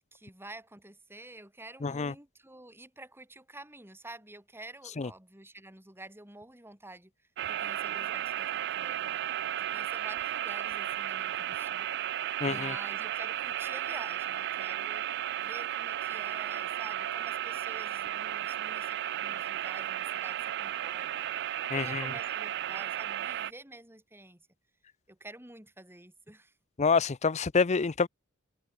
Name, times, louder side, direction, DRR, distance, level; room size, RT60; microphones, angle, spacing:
voice 1, 0.1-7.1 7.5-11.9 12.4-15.0 15.4-21.3 21.7-24.5 25.1-26.5, right 2 dB, 10° right, 6.8 m, -49 dB
voice 2, 1.8-2.1 5.0-5.1 12.4-12.7 21.7-22.1 26.8-28.1, left 5 dB, 30° left, 0.5 m, -27 dB
sound 1, 7.4-23.5, right 12 dB, 55° right, 0.4 m, -34 dB
head